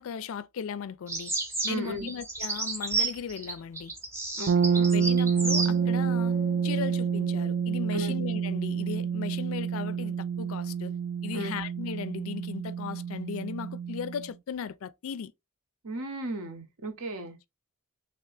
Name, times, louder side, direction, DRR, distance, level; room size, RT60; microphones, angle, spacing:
voice 1, 0.0-1.3 1.6-3.9 4.9-6.4 6.6-11.0 11.2-15.3, left 7 dB, 65° left, 0.3 m, -37 dB
sound 1, 1.1-5.7, right 3 dB, 10° right, 0.7 m, -31 dB
voice 2, 1.7-2.1 4.4-4.9 7.9-8.1 11.3-11.5 15.8-17.4, right 1 dB, 70° right, 0.9 m, -35 dB
sound 2, 4.5-14.3, right 7 dB, 50° right, 0.3 m, -28 dB
sound 3, 5.4-10.2, left 2 dB, 90° right, 1.5 m, -46 dB
3.3 x 3.0 x 3.3 m
head